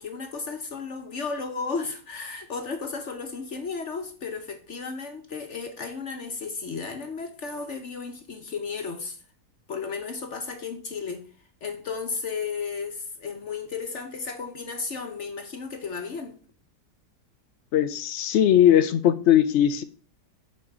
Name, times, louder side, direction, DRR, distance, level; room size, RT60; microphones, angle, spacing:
voice 1, 0.0-9.2 9.7-11.3 11.6-16.4, left 5 dB, 50° left, 1.1 m, -34 dB
voice 2, 17.7-19.8, left 10 dB, 80° left, 0.6 m, -19 dB
7.0 x 4.3 x 6.0 m
omnidirectional pair, 1.8 m